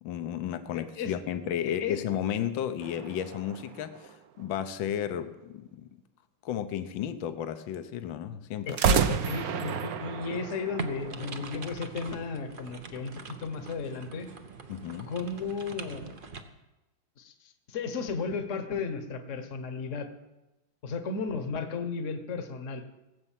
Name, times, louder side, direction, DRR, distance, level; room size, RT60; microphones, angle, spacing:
voice 1, 0.0-5.9 6.4-8.8 14.7-15.1, left 10 dB, 75° left, 1.5 m, -33 dB
voice 2, 0.7-1.2 1.6-2.0 8.7-14.3 15.1-16.1 17.2-20.1 20.8-22.8, left 5 dB, 45° left, 1.4 m, -34 dB
sound 1, 2.8-4.6 8.7-11.8, right 7 dB, 60° right, 1.1 m, -31 dB
sound 2, 10.8-16.4, right 5 dB, 40° right, 0.7 m, -43 dB
18.0 x 8.1 x 7.4 m
omnidirectional pair, 2.2 m